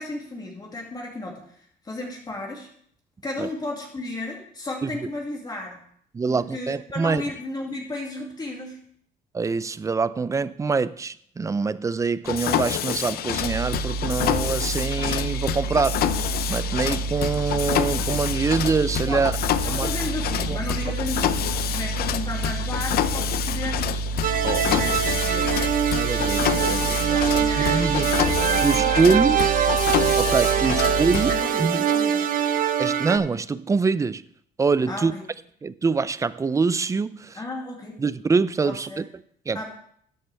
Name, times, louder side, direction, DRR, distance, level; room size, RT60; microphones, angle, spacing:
voice 1, 0.0-1.6 1.8-2.7 3.2-5.8 6.3-8.8 19.1-19.3 19.6-23.8 24.6-25.5 27.1-29.5 30.6-32.3 34.9-35.3 37.3-38.0 38.6-39.0 39.5-39.7, left 2 dB, 25° left, 2.4 m, -34 dB
voice 2, 6.1-7.2 9.3-16.1 16.5-19.3 19.7-19.9 20.5-20.6 24.4-24.9 25.9-27.2 27.6-28.1 28.6-29.4 30.2-31.3 31.6-31.9 32.8-34.2 34.6-35.1 35.6-37.4 38.0-39.1 39.5-39.7, right 4 dB, 20° right, 0.4 m, -24 dB
Mechanisms, 12.3-31.3, left 11 dB, 65° left, 0.7 m, -28 dB
sound 1, 13.4-31.4, right 4 dB, 80° right, 2.5 m, -30 dB
sound 2, 24.2-33.2, right 9 dB, 55° right, 0.9 m, -23 dB
13.0 x 9.5 x 3.4 m
cardioid pair, 110°, 17 cm